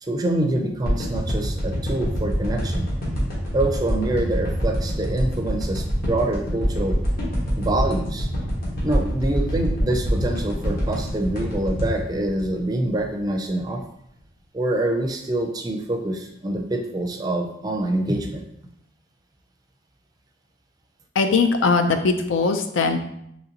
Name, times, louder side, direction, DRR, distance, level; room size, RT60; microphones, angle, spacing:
voice 1, 0.0-2.9 3.5-7.0 7.6-8.3 8.8-13.8 14.5-18.4, right 1 dB, 20° right, 3 dB, 0.4 m, -25 dB
sound 1, 0.8-13.2 13.6-13.7, equal, 50° left, 1.2 m, -25 dB
voice 2, 21.2-23.1, left 4 dB, 85° left, 7 dB, 0.4 m, -20 dB
3.8 x 3.1 x 2.8 m, 0.75 s
head